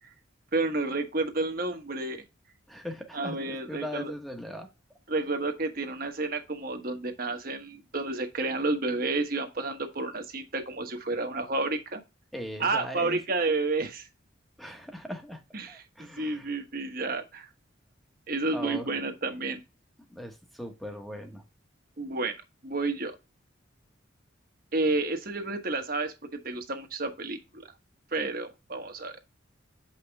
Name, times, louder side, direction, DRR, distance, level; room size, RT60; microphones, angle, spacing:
voice 1, 0.5-2.2 3.1-4.1 5.1-12.0 12.6-14.1 15.5-17.5 18.3-19.6 22.0-22.4 22.6-23.1 24.7-27.6 28.1-29.1, right 3 dB, 45° right, 1.3 m, -30 dB
voice 2, 2.7-4.7 12.3-13.2 14.6-15.4 15.7-16.6 18.5-18.9 20.1-21.4, equal, ahead, 1.2 m, -39 dB
7.6 x 5.6 x 3.4 m
head